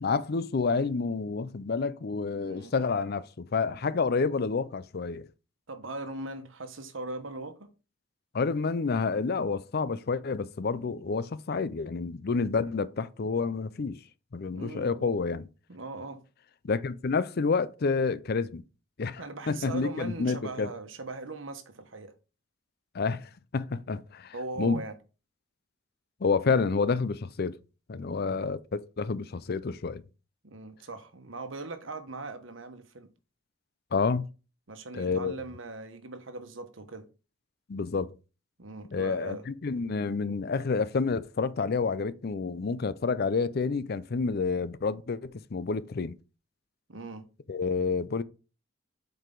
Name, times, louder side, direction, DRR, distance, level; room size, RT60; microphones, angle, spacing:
voice 1, 0.0-5.3 8.3-14.0 14.3-15.5 16.6-18.6 19.0-20.7 22.9-24.8 26.2-27.6 27.9-30.0 33.9-34.2 34.9-35.4 37.7-38.1 38.9-46.2 47.5-48.2, left 4 dB, 55° left, 0.5 m, -29 dB
voice 2, 2.4-2.7 5.7-7.7 14.5-15.1 15.7-16.2 19.2-22.1 24.3-24.9 28.2-28.5 30.4-33.1 34.7-37.1 38.6-39.4 46.9-47.3, right 3 dB, 85° right, 1.2 m, -40 dB
7.9 x 4.7 x 3.9 m
head